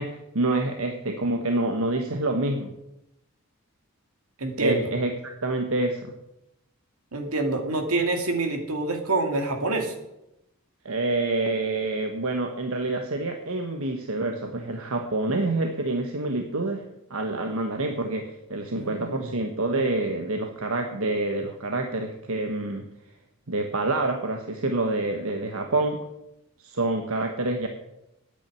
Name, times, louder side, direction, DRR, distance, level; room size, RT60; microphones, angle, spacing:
voice 1, 0.0-2.7 4.6-6.1 10.8-16.8 17.1-22.8 23.5-26.0 26.6-27.7, right 2 dB, 70° right, 5 dB, 1.2 m, -27 dB
voice 2, 4.4-4.9 7.1-9.9 18.8-19.4, right 2 dB, 90° right, 5 dB, 2.3 m, -26 dB
10.0 x 8.7 x 9.1 m, 0.87 s
head